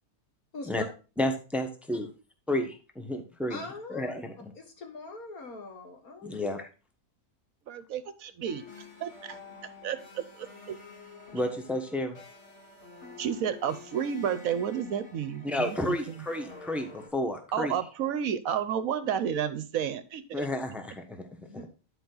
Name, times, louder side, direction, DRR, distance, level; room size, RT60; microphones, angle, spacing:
voice 1, 0.5-0.9 3.5-4.1 4.5-6.3 21.4-21.7, left 2 dB, 70° left, 2.0 m, -42 dB
voice 2, 1.2-2.1 2.5-3.6 3.9-4.3 6.2-6.7 11.3-12.2 15.4-17.7 20.3-21.3, left 1 dB, ahead, 0.9 m, -31 dB
voice 3, 7.7-8.6 9.0-9.4 9.8-10.7 13.2-16.2 17.5-20.5, right 8 dB, 70° right, 1.1 m, -31 dB
sound 1, 8.4-17.1, left 4 dB, 50° left, 2.2 m, -49 dB
10.5 x 4.8 x 3.8 m
omnidirectional pair, 1.6 m